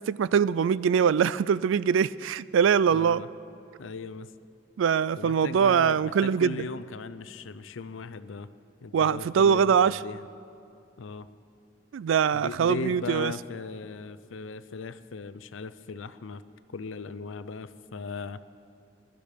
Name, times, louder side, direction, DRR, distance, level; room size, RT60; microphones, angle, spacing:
voice 1, 0.1-3.2 4.8-6.6 8.9-10.0 11.9-13.3, right 7 dB, 80° right, 19 dB, 0.3 m, -23 dB
voice 2, 2.9-3.3 3.8-4.3 5.2-8.5 8.8-10.2 11.0-11.3 12.3-16.4 16.7-18.4, left 4 dB, 80° left, 14 dB, 0.6 m, -38 dB
22.0 x 12.0 x 5.2 m, 2.5 s
head